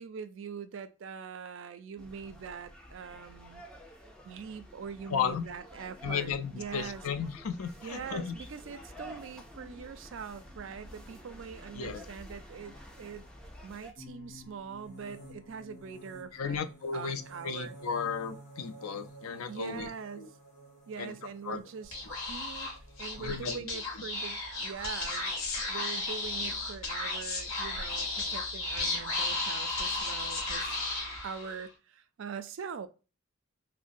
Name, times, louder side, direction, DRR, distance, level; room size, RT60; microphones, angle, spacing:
voice 1, 0.0-3.6 4.2-7.0 7.8-13.3 13.6-16.6 16.9-17.7 19.5-20.3 20.9-21.9 22.3-22.7 23.0-25.3 25.7-30.8 31.2-32.9, right 6 dB, 60° right, 0.4 m, -43 dB
sound 1, 2.0-13.9, equal, 5° left, 0.4 m, -50 dB
voice 2, 5.1-5.4 6.0-8.4 11.8-12.0 16.3-19.9 20.2-20.3 21.0-21.1 21.4-21.6 23.2-23.6, left 6 dB, 90° left, 0.4 m, -34 dB
sound 2, 13.9-23.6, equal, 35° left, 1.0 m, -52 dB
Speech / Whispering, 21.8-31.7, left 2 dB, 70° left, 1.1 m, -34 dB
3.7 x 2.0 x 2.4 m
head